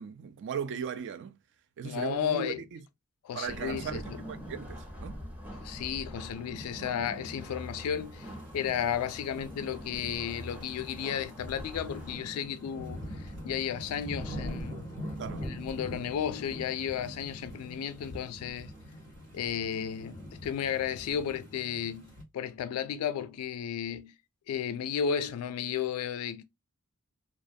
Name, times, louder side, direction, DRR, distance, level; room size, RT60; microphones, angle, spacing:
voice 1, 0.0-1.4 1.8-2.8 3.3-5.2 15.2-15.5, right 7 dB, 55° right, 0.3 m, -37 dB
voice 2, 1.8-2.6 3.2-4.3 5.5-14.9 15.4-18.7 19.3-24.1 24.5-26.4, left 8 dB, 75° left, 0.3 m, -33 dB
sound 1, 3.4-12.1, equal, 5° right, 0.6 m, -43 dB
sound 2, 7.9-22.2, equal, 80° right, 1.2 m, -43 dB
2.4 x 2.1 x 2.5 m
head